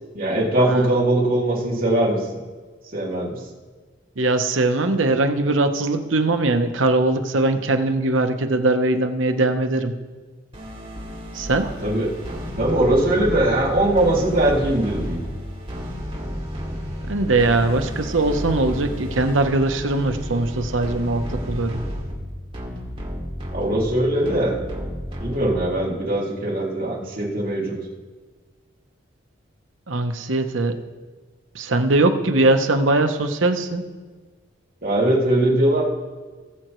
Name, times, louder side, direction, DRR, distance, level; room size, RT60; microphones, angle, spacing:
voice 1, 0.1-2.3 2.9-3.4 11.8-12.1 12.6-15.2 23.5-24.6 25.2-27.8 34.8-35.8, right 1 dB, 50° right, -5 dB, 2.6 m, -21 dB
voice 2, 4.2-9.9 11.3-11.7 17.0-21.8 29.9-30.8 31.5-33.8, right 2 dB, 90° right, 7 dB, 0.9 m, -21 dB
sound 1, 10.5-25.9, equal, 30° right, 2.5 m, -32 dB
19.5 x 7.6 x 3.1 m, 1.4 s
head